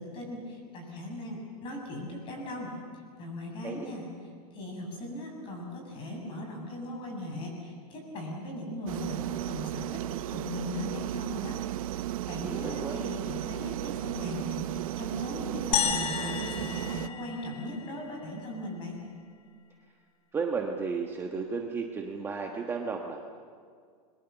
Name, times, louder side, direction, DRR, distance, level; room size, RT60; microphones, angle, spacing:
voice 1, 0.0-2.7 3.2-4.1 4.5-10.0 10.3-11.6 12.3-19.0, left 1 dB, 25° left, 1 dB, 7.4 m, -38 dB
sound 1, 8.9-17.1, right 14 dB, 65° right, 0.8 m, -35 dB
voice 2, 12.4-13.0 20.3-23.3, right 5 dB, 10° right, 1 dB, 1.3 m, -33 dB
sound 2, 15.7-18.2, left 8 dB, 80° left, 2.2 m, -32 dB
30.0 x 23.0 x 7.1 m, 2.1 s
supercardioid pair, 165°, 19 cm